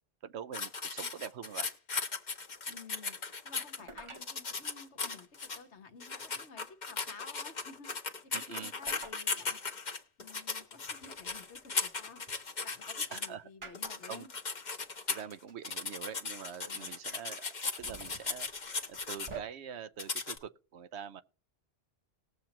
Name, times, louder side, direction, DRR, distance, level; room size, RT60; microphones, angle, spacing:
voice 1, 0.2-1.7 8.3-8.7 13.1-13.5 14.1-14.3 15.1-18.5 18.9-21.2, right 8 dB, 75° right, 0.9 m, -44 dB
sound 1, 0.5-3.8 4.1-5.6 6.0-13.3 13.7-15.3 15.6-19.3 20.0-20.4, left 4 dB, 45° left, 1.1 m, -37 dB
voice 2, 2.7-3.2 3.4-7.9 8.2-9.6 10.2-12.2 12.6-14.3 16.7-16.9, left 4 dB, 80° left, 1.5 m, -52 dB
sound 2, 3.8-4.3 5.6-5.7 7.2-7.6 8.8-9.2 9.6-9.7 11.2-12.3 13.6-14.2 15.2-15.3 15.5-15.6 16.6-17.2 17.6-19.4, right 3 dB, 30° right, 0.9 m, -49 dB
19.5 x 7.2 x 2.9 m
omnidirectional pair, 1.1 m